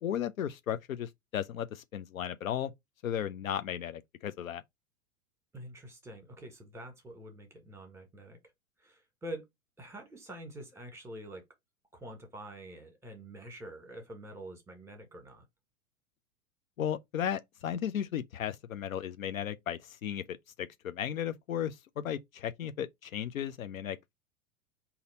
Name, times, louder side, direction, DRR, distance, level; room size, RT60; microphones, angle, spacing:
voice 1, 0.0-2.7 3.0-4.6 16.8-24.1, left 9 dB, 75° left, 0.6 m, -35 dB
voice 2, 5.5-8.4 8.8-9.4 9.8-11.4 11.9-15.4, right 1 dB, 5° right, 1.5 m, -46 dB
3.9 x 2.8 x 4.1 m
figure-of-eight pair, 95°, 42 cm